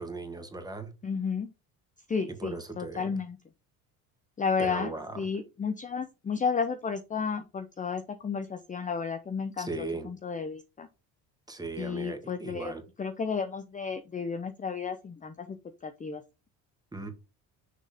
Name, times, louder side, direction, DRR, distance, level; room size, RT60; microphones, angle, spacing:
voice 1, 0.0-0.9 2.4-3.1 4.6-5.2 9.6-10.1 11.5-12.8 16.9-17.1, right 3 dB, 10° right, 1.6 m, -37 dB
voice 2, 1.0-1.5 2.1-3.4 4.4-10.9 11.8-15.6 15.8-16.2, left 5 dB, 20° left, 0.6 m, -32 dB
6.5 x 3.7 x 4.9 m
supercardioid pair, 95°, 41 cm